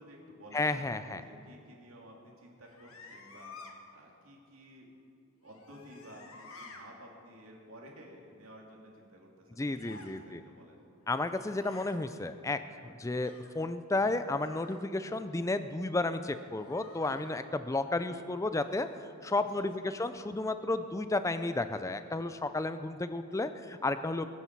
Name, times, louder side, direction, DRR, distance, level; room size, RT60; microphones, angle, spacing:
voice 1, 0.0-4.9 5.4-10.8 19.3-19.9, equal, 65° right, -1 dB, 2.6 m, -53 dB
voice 2, 0.5-1.2 9.6-10.4 11.1-24.3, left 2 dB, 15° left, 11 dB, 0.4 m, -32 dB
sound 1, 2.6-3.7 5.4-6.8 9.7-10.2 11.0-11.9 13.2-13.6 14.4-14.8 16.6-17.4 18.6-19.1, left 3 dB, 65° left, 1.5 m, -52 dB
21.0 x 9.9 x 4.6 m, 2.5 s
head